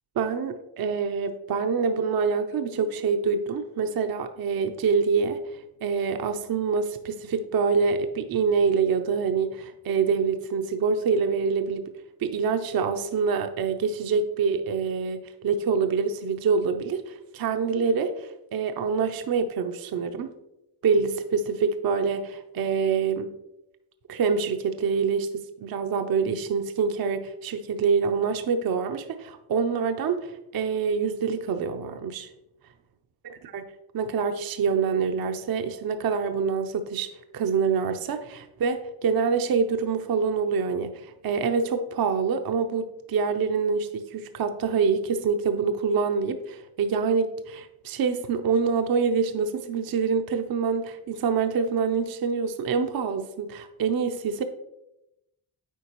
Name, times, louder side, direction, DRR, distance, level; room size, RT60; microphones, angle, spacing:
voice 1, 0.2-11.8 12.2-20.3 20.8-23.3 24.1-32.3 33.5-33.6 33.9-37.1 37.3-54.4, right 5 dB, 45° right, 7 dB, 0.7 m, -26 dB
8.2 x 4.5 x 3.0 m, 0.88 s
cardioid pair, 65°, 50 cm